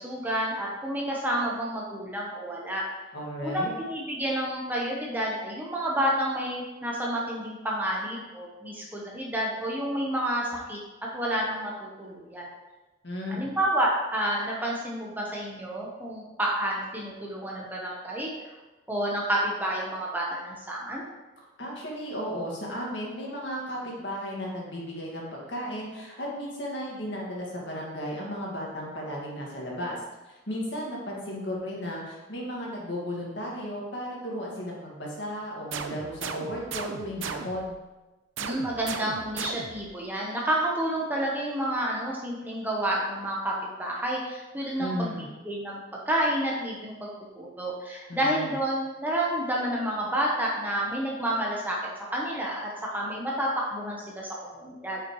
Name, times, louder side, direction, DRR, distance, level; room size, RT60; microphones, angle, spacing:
voice 1, 0.0-2.8 3.4-10.8 11.1-12.5 13.3-18.3 18.9-21.0 38.4-47.1 47.3-51.8 52.1-55.0, right 1 dB, 10° right, -3 dB, 1.0 m, -29 dB
voice 2, 3.1-3.7 13.0-13.6 21.6-30.0 30.2-37.8 44.8-45.3 48.1-48.5, equal, 60° left, -3 dB, 2.0 m, -34 dB
sound 1, 35.7-37.8 38.4-39.9, right 6 dB, 75° right, 0.6 m, -37 dB
8.3 x 5.8 x 3.2 m, 1.1 s
head